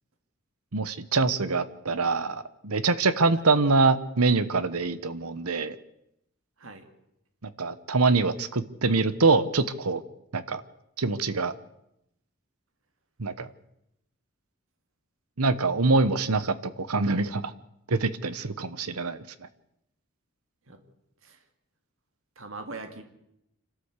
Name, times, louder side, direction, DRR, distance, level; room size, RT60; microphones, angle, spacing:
voice 1, 0.7-5.7 7.6-10.0 10.3-10.6 11.0-11.5 13.2-13.5 15.4-17.5 17.9-19.2, right 3 dB, 90° right, 14 dB, 1.1 m, -24 dB
voice 2, 22.4-23.0, right 3 dB, 65° right, 7 dB, 2.3 m, -41 dB
27.0 x 13.0 x 8.3 m, 0.82 s
head